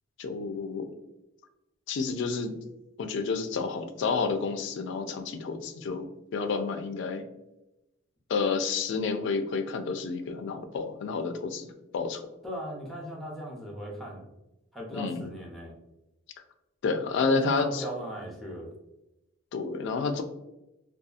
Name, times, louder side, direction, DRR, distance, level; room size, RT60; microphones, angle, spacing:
voice 1, 0.2-0.9 1.9-2.5 3.0-6.1 6.3-7.2 8.3-11.7 11.9-12.2 14.9-15.3 16.8-17.8 19.5-20.2, left 4 dB, 60° left, 7 dB, 0.3 m, -30 dB
voice 2, 12.4-14.2 14.7-15.7 17.2-18.7, equal, ahead, -2 dB, 0.6 m, -38 dB
2.7 x 2.3 x 2.4 m, 0.93 s
head